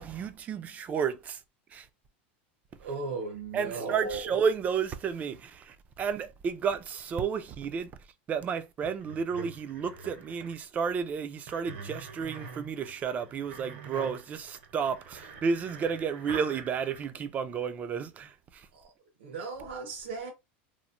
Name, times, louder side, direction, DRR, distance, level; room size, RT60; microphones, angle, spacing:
voice 1, 0.0-1.4 1.7-1.9 3.5-7.9 8.3-18.7, right 6 dB, 25° right, 0.3 m, -32 dB
voice 2, 2.8-4.4 18.7-18.9 19.2-20.3, right 4 dB, 90° right, 0.9 m, -36 dB
sound 1, 8.8-10.6 11.5-17.0, right 5 dB, 65° right, 0.7 m, -45 dB
3.0 x 2.0 x 2.4 m
supercardioid pair, 140°, 6 cm